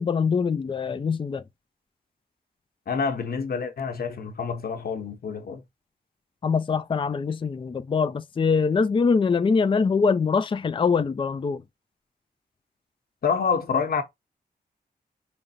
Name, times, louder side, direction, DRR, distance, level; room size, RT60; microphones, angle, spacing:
voice 1, 0.0-1.4 6.4-11.6, left 5 dB, 30° left, 0.4 m, -23 dB
voice 2, 2.9-5.6 13.2-14.0, left 5 dB, 70° left, 0.9 m, -27 dB
5.1 x 2.0 x 4.0 m
wide cardioid pair, 90°, 17 cm